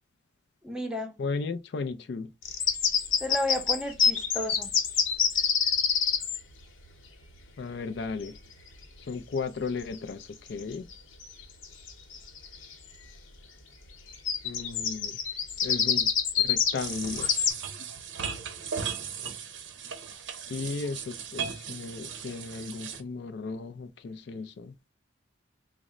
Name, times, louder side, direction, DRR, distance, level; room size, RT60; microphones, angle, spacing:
voice 1, 0.6-1.2 3.2-4.7, left 1 dB, 5° right, 0.6 m, -32 dB
voice 2, 1.2-2.3 7.6-8.4 9.1-10.9 14.4-15.2 15.6-16.1 16.4-17.3 20.5-24.7, left 4 dB, 60° left, 0.4 m, -35 dB
sound 1, 2.4-6.4 9.8-10.0 10.5-10.9 11.2-11.3 11.6-12.7 14.1-17.5, left 7 dB, 90° left, 1.0 m, -26 dB
sound 2, 16.8-23.0, right 7 dB, 70° right, 0.6 m, -37 dB
4.1 x 2.1 x 3.6 m
head